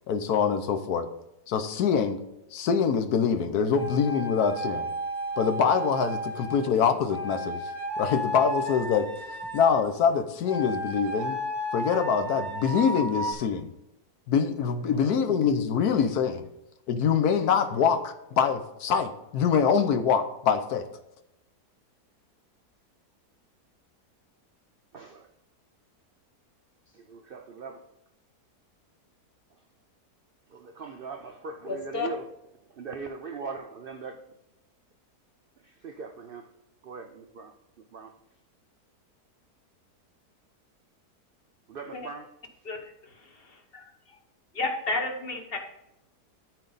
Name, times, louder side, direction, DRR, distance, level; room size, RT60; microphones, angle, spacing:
voice 1, 0.1-1.1 1.5-2.2 2.5-4.9 5.4-7.6 8.0-9.1 9.5-11.4 11.7-13.7 14.3-16.4 16.9-20.8, left 6 dB, 75° left, 1.2 m, -24 dB
sound 1, 3.7-6.7 7.1-9.8 10.4-13.3, equal, ahead, 1.4 m, -33 dB
voice 2, 24.9-25.3 26.9-27.9 30.5-32.3 32.8-34.2 35.6-36.5 36.8-37.5 37.9-38.1 41.7-42.3, right 4 dB, 70° right, 0.5 m, -40 dB
voice 3, 31.7-32.1 41.9-42.0 42.6-42.8 43.7-43.8 44.5-45.6, left 3 dB, 40° left, 1.3 m, -30 dB
13.0 x 4.6 x 4.0 m
omnidirectional pair, 1.7 m